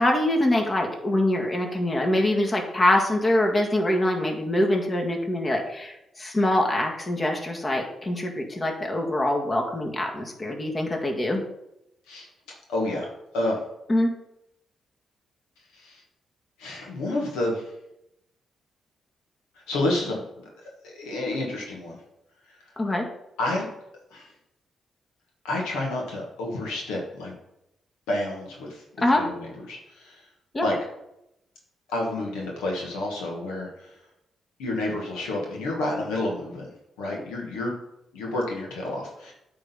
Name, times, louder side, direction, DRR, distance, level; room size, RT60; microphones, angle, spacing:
voice 1, 0.0-11.4 13.9-14.1 22.8-23.0 29.0-29.2 30.5-30.7, left 1 dB, 35° left, 1 dB, 1.8 m, -24 dB
voice 2, 12.7-13.1 13.3-13.6 15.7-16.0 16.6-17.7 19.7-20.2 20.8-22.0 23.4-23.7 24.1-24.3 25.4-27.3 28.1-28.8 29.1-30.2 30.6-30.8 31.9-33.9 34.6-37.7 38.1-39.3, left 1 dB, 80° left, -1 dB, 1.6 m, -29 dB
8.9 x 3.8 x 5.7 m, 0.83 s
hypercardioid pair, 45°, 0 cm